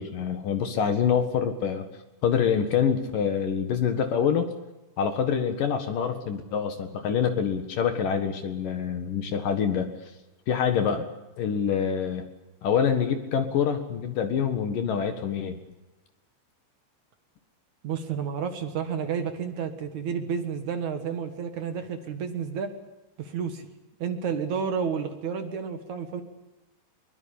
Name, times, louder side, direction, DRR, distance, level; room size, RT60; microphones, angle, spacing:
voice 1, 0.0-1.9 2.2-4.5 5.0-10.0 10.5-11.1 11.4-12.3 12.6-15.6, left 7 dB, 60° left, 8 dB, 2.6 m, -26 dB
voice 2, 17.8-22.7 23.2-23.7 24.0-26.2, right 6 dB, 55° right, 7 dB, 2.2 m, -31 dB
22.5 x 21.0 x 8.6 m, 1.0 s
omnidirectional pair, 5.6 m